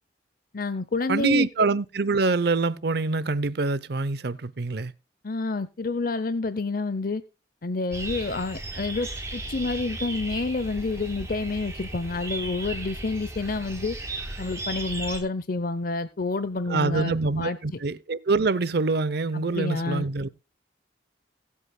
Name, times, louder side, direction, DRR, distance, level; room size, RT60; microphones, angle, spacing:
voice 1, 0.5-1.5 5.2-7.2 7.6-14.0 14.4-17.6 19.3-20.1, left 3 dB, 50° left, 0.6 m, -29 dB
voice 2, 1.1-4.9 16.7-20.3, right 3 dB, 60° right, 0.7 m, -25 dB
sound 1, 7.9-15.2, right 2 dB, 15° right, 3.5 m, -35 dB
23.5 x 8.3 x 2.2 m
head